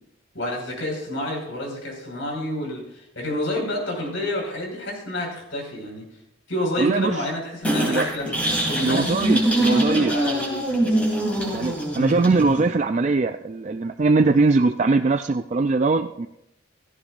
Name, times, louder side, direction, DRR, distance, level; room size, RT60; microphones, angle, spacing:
voice 1, 0.3-6.0 6.5-8.4 8.7-9.1 9.6-11.0 11.9-12.2, left 1 dB, 70° left, -1 dB, 4.9 m, -29 dB
voice 2, 6.8-7.3 7.9-8.1 8.8-10.2 11.5-16.3, right 3 dB, 35° right, 7 dB, 0.3 m, -21 dB
sound 1, 7.6-12.6, right 1 dB, 5° left, 3.2 m, -23 dB
16.0 x 14.5 x 2.5 m, 0.84 s
head